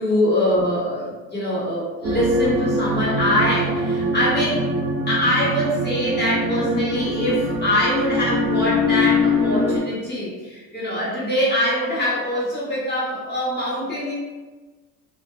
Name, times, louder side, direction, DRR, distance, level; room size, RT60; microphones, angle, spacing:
voice 1, 0.0-4.7 5.1-14.1, left 1 dB, 25° left, -8 dB, 1.2 m, -23 dB
sound 1, 2.0-9.8, left 1 dB, 40° right, 0.5 m, -23 dB
2.5 x 2.4 x 2.3 m, 1.3 s
supercardioid pair, 110°, 37 cm